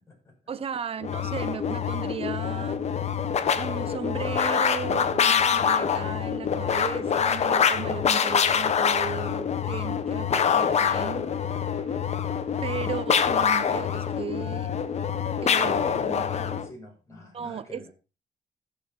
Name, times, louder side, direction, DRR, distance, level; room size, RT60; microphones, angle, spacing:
voice 1, 0.5-2.8 3.5-12.1 12.6-14.7 15.4-16.3 17.3-17.9, right 7 dB, 45° right, 1.0 m, -36 dB
sound 1, 1.0-16.7, left 7 dB, 50° left, 1.1 m, -25 dB
voice 2, 15.8-17.9, left 2 dB, 20° left, 6.6 m, -46 dB
14.5 x 6.9 x 4.5 m
cardioid pair, 110°, 14 cm